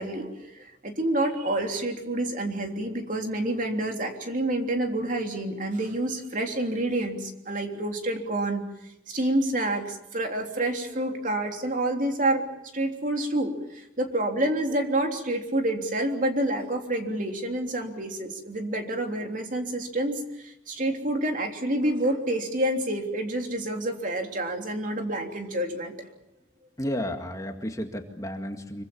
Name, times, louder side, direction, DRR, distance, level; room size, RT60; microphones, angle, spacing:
voice 1, 0.0-8.6 9.1-12.4 12.7-26.0, right 1 dB, 45° right, 3 dB, 3.3 m, -28 dB
voice 2, 26.8-28.8, equal, 20° left, 4 dB, 2.1 m, -32 dB
26.5 x 24.0 x 7.1 m, 0.84 s
head